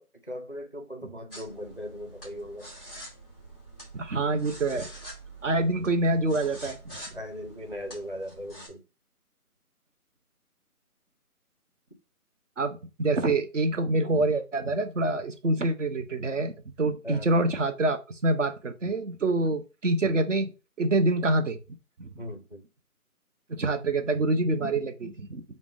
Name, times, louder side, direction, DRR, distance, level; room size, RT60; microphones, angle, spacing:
voice 1, 0.0-2.7 7.1-8.8 17.0-17.3 22.2-22.6, equal, 40° left, 0.4 m, -39 dB
sound 1, 1.3-8.7, right 1 dB, ahead, 0.7 m, -46 dB
voice 2, 3.9-4.9 5.4-6.8 12.6-21.6 22.0-22.1 23.5-25.4, right 2 dB, 55° right, 0.7 m, -26 dB
4.9 x 2.1 x 3.5 m
figure-of-eight pair, 165°, 45 cm